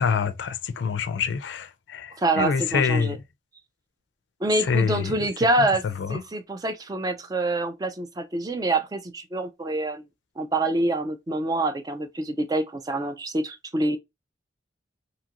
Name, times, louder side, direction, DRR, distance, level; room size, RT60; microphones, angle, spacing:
voice 1, 0.0-3.2 4.6-5.1 5.6-6.2, left 6 dB, 70° left, 0.3 m, -26 dB
voice 2, 2.2-3.2 4.4-5.8 6.1-10.0 10.4-14.0, right 2 dB, 20° right, 0.3 m, -26 dB
2.8 x 2.4 x 2.8 m
head